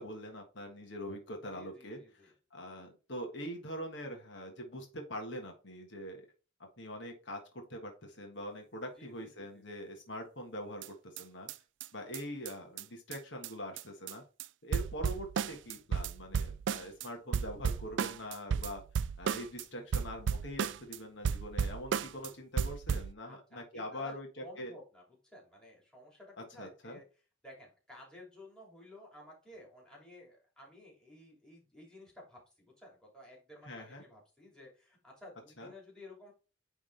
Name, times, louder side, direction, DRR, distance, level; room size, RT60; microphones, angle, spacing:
voice 1, 0.0-6.3 6.6-11.5 11.9-14.2 14.6-18.8 19.2-24.8 26.4-27.0 33.6-34.0 35.6-35.7, equal, 65° left, 3 dB, 1.5 m, -43 dB
voice 2, 1.5-2.3 8.9-9.9 23.3-24.1 24.4-27.0 27.4-36.3, left 1 dB, 5° left, -2 dB, 3.0 m, -54 dB
sound 1, 10.8-10.9 11.2-11.3 11.5-11.6 11.8-11.9 12.1-12.2 12.5-12.6 12.8-12.9 13.1-13.2 13.4-13.5 13.8-14.1 14.4-14.5 14.7-17.1 17.3-19.6 19.9-21.0 21.2-22.3 22.6-23.1, right 6 dB, 70° right, 0.4 m, -34 dB
9.6 x 3.6 x 3.3 m, 0.33 s
head